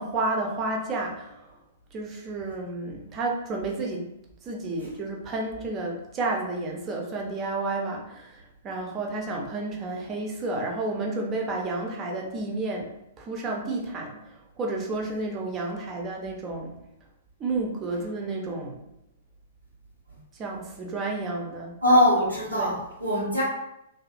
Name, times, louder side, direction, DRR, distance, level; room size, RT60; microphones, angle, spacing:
voice 1, 0.0-1.5 1.9-4.1 4.4-12.9 13.2-16.8 17.4-18.8 20.4-21.7 22.5-22.8, right 2 dB, 25° right, 1 dB, 0.6 m, -31 dB
voice 2, 21.8-23.4, equal, 85° right, -9 dB, 1.0 m, -22 dB
2.6 x 2.5 x 2.4 m, 0.85 s
figure-of-eight pair, 110°, 0 cm